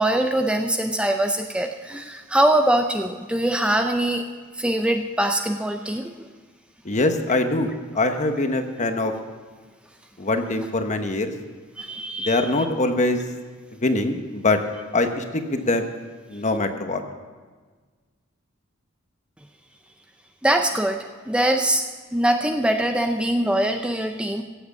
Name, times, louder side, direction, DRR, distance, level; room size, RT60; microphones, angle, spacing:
voice 1, 0.0-4.2 4.6-6.1 11.8-12.6 20.4-21.0 21.3-21.8 22.1-24.4, right 1 dB, 5° right, 5 dB, 0.5 m, -22 dB
voice 2, 6.8-9.1 10.2-11.3 12.2-13.2 13.8-14.6 14.9-15.9 16.3-17.0, left 2 dB, 35° left, 6 dB, 1.1 m, -23 dB
15.5 x 7.9 x 7.1 m, 1.4 s
head